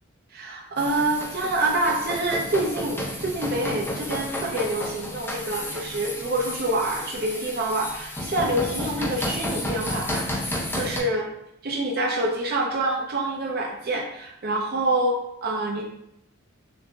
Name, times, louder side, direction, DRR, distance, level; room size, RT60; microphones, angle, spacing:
voice 1, 0.3-10.2 10.7-11.3 11.6-15.8, right 2 dB, 50° right, -1 dB, 0.5 m, -26 dB
sound 1, 0.8-11.0, left 1 dB, 10° left, 0.6 m, -32 dB
6.4 x 2.5 x 2.3 m, 0.78 s
head